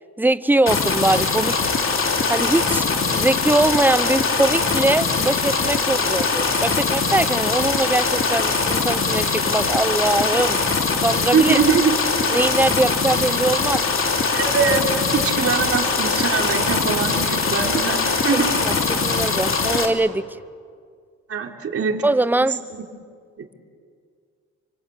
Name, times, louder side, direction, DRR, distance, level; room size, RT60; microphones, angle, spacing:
voice 1, 0.2-1.6 2.3-10.6 11.0-11.6 12.3-13.8 18.6-20.2 22.0-22.6, right 2 dB, 5° right, 15 dB, 0.8 m, -21 dB
sound 1, 0.7-19.9, left 4 dB, 45° left, 3.3 m, -22 dB
voice 2, 11.3-12.0 14.3-18.5 21.3-22.0 23.4-23.5, right 6 dB, 50° right, 2 dB, 3.8 m, -22 dB
28.0 x 25.0 x 8.4 m, 2.1 s
cardioid pair, 90°, 30 cm